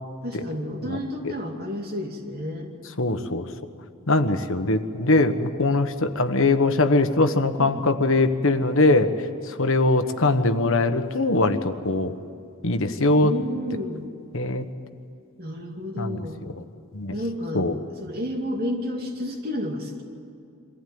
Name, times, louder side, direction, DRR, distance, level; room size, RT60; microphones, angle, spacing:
voice 1, 0.2-2.7 6.0-6.1 7.6-7.8 13.2-14.2 15.4-16.4 17.1-17.7 18.0-20.0, equal, 45° right, 2 dB, 2.6 m, -31 dB
voice 2, 3.0-3.5 4.1-9.1 9.5-12.1 12.6-13.3 14.3-14.6 16.0-16.2 16.9-17.1 17.5-17.7, left 2 dB, 65° left, 8 dB, 1.3 m, -21 dB
24.0 x 15.5 x 9.5 m, 2.5 s
head